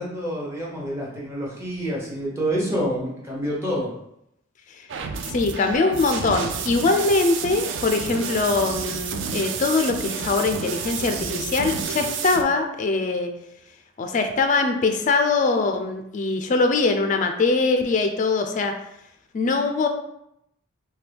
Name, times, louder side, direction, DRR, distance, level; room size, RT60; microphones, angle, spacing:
voice 1, 0.0-3.9, equal, 15° right, -5 dB, 0.9 m, -27 dB
sound 1, 4.9-12.4, right 6 dB, 60° right, 0.4 m, -30 dB
voice 2, 5.3-13.3 14.0-18.8 19.3-19.9, left 3 dB, 35° left, 6 dB, 0.3 m, -22 dB
4.3 x 2.2 x 3.4 m, 0.80 s
head